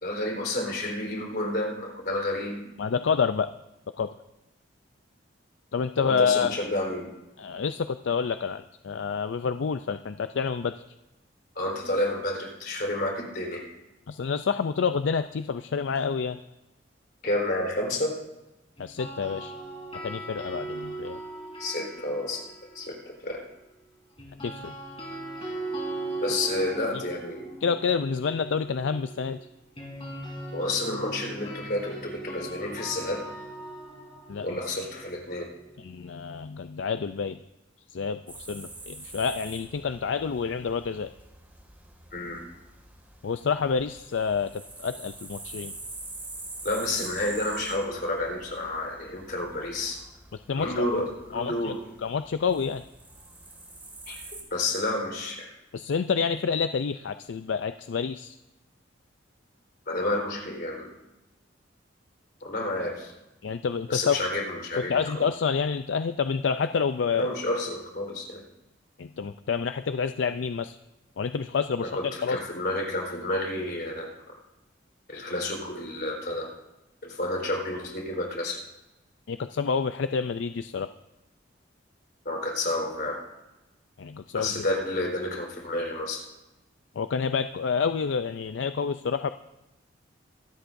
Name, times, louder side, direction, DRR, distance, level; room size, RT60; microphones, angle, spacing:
voice 1, 0.0-2.7 6.0-7.1 11.5-13.6 17.2-18.1 21.6-22.4 22.7-23.4 26.2-27.5 30.5-33.2 34.4-35.5 42.1-42.4 46.6-50.0 50.6-51.1 51.3-51.8 54.1-54.2 54.5-55.5 59.9-60.9 62.4-63.1 63.9-65.3 67.2-68.4 71.8-74.4 75.1-76.5 77.0-78.6 82.2-83.2 84.3-86.2, left 1 dB, 50° left, 0 dB, 4.0 m, -30 dB
voice 2, 2.8-3.5 4.0-4.1 5.7-6.6 7.4-10.7 14.1-16.4 18.8-19.5 20.0-21.2 24.4-24.7 27.6-29.4 34.3-34.5 35.8-37.4 37.9-41.1 43.2-45.7 50.5-50.9 51.3-51.7 52.0-52.8 55.7-58.4 63.4-64.2 64.9-67.3 69.0-70.8 71.2-71.9 72.2-72.4 79.3-80.9 84.0-84.6 87.0-89.3, left 6 dB, 70° left, 11 dB, 0.4 m, -28 dB
sound 1, 18.8-23.0 24.2-36.1, right 2 dB, 30° left, 3.7 m, -39 dB
sound 2, 38.3-54.4, right 2 dB, 10° right, 2.1 m, -45 dB
24.5 x 13.0 x 2.6 m, 0.99 s
head